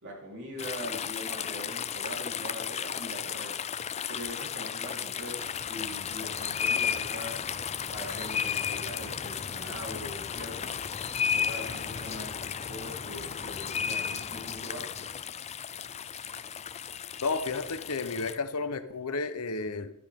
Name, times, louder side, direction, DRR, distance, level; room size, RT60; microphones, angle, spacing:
voice 1, 0.0-3.6 4.1-7.5 7.9-10.8 11.3-15.1 18.5-18.7, equal, 55° right, 3.9 m, -42 dB
sound 1, 0.6-18.4, left 7 dB, 30° left, 0.4 m, -34 dB
voice 2, 17.2-19.9, left 4 dB, 75° left, 0.9 m, -32 dB
13.5 x 12.5 x 3.7 m
head